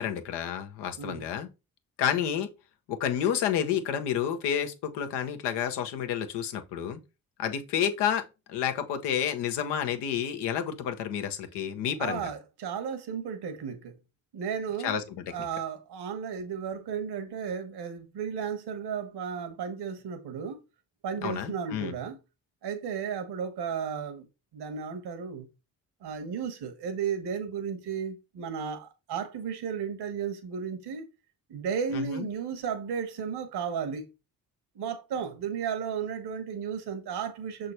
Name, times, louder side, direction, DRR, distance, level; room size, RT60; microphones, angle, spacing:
voice 1, 0.0-1.5 2.0-2.5 2.9-7.0 7.4-8.2 8.5-12.3 14.8-15.3 21.2-21.9 31.9-32.3, left 9 dB, 85° left, 1.0 m, -30 dB
voice 2, 12.0-13.9 14.3-15.0 15.3-20.6 21.0-22.2 22.6-24.2 24.5-25.5 26.0-31.1 31.5-34.1 34.7-37.7, right 7 dB, 75° right, 1.3 m, -34 dB
6.7 x 3.9 x 4.3 m
hypercardioid pair, 45°, 40 cm